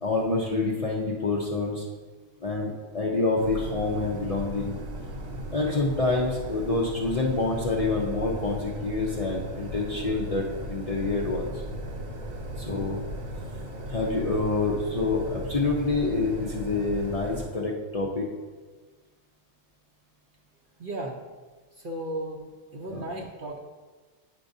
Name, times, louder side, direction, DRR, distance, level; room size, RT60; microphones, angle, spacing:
voice 1, 0.0-1.8 2.4-4.8 5.5-11.6 12.6-13.0 13.9-18.3 22.9-23.1, left 3 dB, 45° left, -3 dB, 0.5 m, -27 dB
sound 1, 3.4-17.5, equal, 80° right, 1.3 m, -36 dB
voice 2, 20.8-21.2 21.7-22.4 22.7-23.6, right 1 dB, 55° right, 0 dB, 0.6 m, -35 dB
9.4 x 4.9 x 2.6 m, 1.4 s
omnidirectional pair, 1.4 m